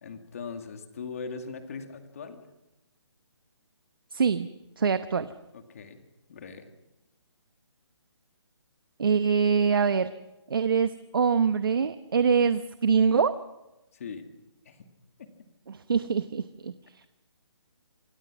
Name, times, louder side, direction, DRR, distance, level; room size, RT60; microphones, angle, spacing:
voice 1, 0.0-2.4 5.5-6.0 6.3-6.7 13.9-14.3 14.7-14.9 15.2-15.5, left 5 dB, 30° left, 6 dB, 2.3 m, -40 dB
voice 2, 4.1-4.5 4.8-5.3 9.0-10.1 10.5-13.4 15.7-17.0, right 6 dB, 50° right, 11 dB, 1.0 m, -24 dB
27.0 x 20.5 x 6.2 m, 0.97 s
hypercardioid pair, 175°, 15 cm